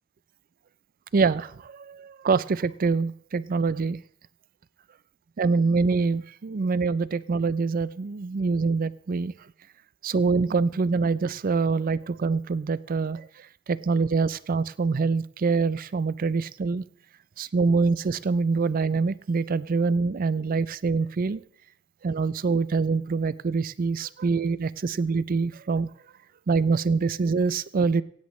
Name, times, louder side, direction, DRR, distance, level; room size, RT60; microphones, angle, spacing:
voice 1, 1.1-4.0 5.4-9.3 10.0-13.3 13.7-16.8 17.4-21.4 22.0-25.9 26.5-28.0, right 4 dB, 45° right, 18 dB, 0.4 m, -25 dB
16.5 x 16.0 x 3.2 m, 0.64 s
head